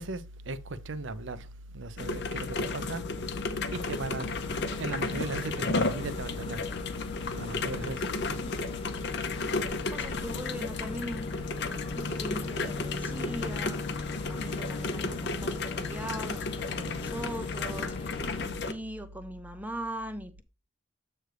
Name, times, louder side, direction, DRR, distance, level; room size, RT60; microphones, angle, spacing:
voice 1, 0.0-1.5 1.7-3.0 3.7-6.7 7.3-8.4 9.4-9.5 16.8-17.1, right 2 dB, 60° right, 0.6 m, -37 dB
sound 1, 2.0-18.7, left 3 dB, 55° left, 0.8 m, -33 dB
sound 2, 3.7-18.5, left 3 dB, 25° left, 0.3 m, -42 dB
voice 2, 8.3-8.6 9.7-11.3 12.0-20.4, right 1 dB, 10° right, 0.7 m, -40 dB
7.9 x 3.3 x 6.2 m
head